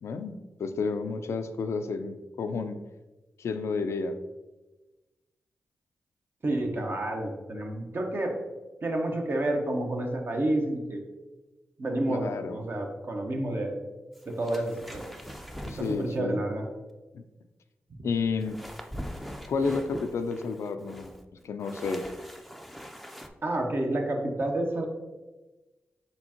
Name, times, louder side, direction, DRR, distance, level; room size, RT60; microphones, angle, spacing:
voice 1, 0.0-2.8 3.4-4.2 12.1-12.6 15.6-16.4 17.1-17.2 18.0-18.6 19.5-21.1 21.4-22.1, left 4 dB, 70° left, 8 dB, 0.3 m, -31 dB
voice 2, 6.4-8.4 8.8-11.0 11.8-13.8 14.3-15.1 15.9-16.7 23.4-24.9, right 1 dB, 50° right, 2 dB, 0.8 m, -29 dB
sound 1, 14.1-16.2 18.4-23.3, equal, ahead, 0.4 m, -42 dB
4.3 x 3.6 x 2.8 m, 1.1 s
supercardioid pair, 40°, 5 cm